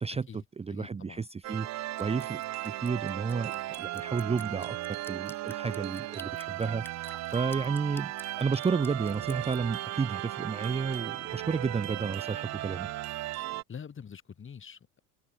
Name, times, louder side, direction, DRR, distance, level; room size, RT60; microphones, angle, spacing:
voice 1, 0.0-8.1 8.4-12.9, right 5 dB, 15° right, 0.8 m, -32 dB
voice 2, 0.7-1.3 7.5-7.7 13.7-15.0, left 7 dB, 30° left, 4.0 m, -45 dB
sound 1, 1.4-13.6, right 16 dB, 45° right, 0.8 m, -36 dB
Drip, 2.0-9.6, left 2 dB, 5° left, 1.1 m, -51 dB
open air
hypercardioid pair, 70°, 38 cm